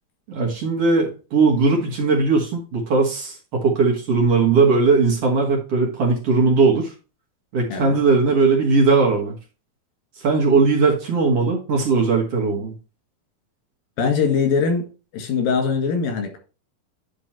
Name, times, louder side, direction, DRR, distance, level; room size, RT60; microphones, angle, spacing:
voice 1, 0.3-6.9 7.5-9.3 10.2-12.7, right 4 dB, 55° right, 2.1 m, -19 dB
voice 2, 7.7-8.0 14.0-14.8 15.1-16.4, left 5 dB, 85° left, 3.5 m, -21 dB
10.5 x 3.6 x 4.3 m
omnidirectional pair, 3.9 m